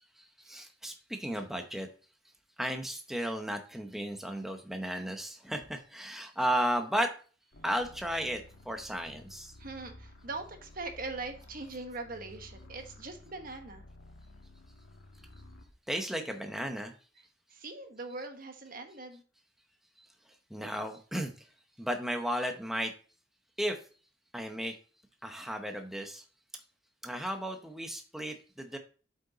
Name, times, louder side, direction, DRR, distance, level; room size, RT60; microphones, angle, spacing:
voice 1, 0.2-1.9 2.6-7.1 7.6-9.5 15.9-16.9 20.5-21.5 21.8-22.9 23.6-23.8 24.3-24.7 25.2-26.2 27.0-28.8, equal, ahead, 4 dB, 0.8 m, -34 dB
sound 1, 7.5-15.8, left 1 dB, 80° left, 1.3 m, -53 dB
voice 2, 9.6-13.8 17.5-19.2, right 3 dB, 50° right, 6 dB, 1.2 m, -41 dB
7.9 x 5.5 x 3.9 m, 0.39 s
head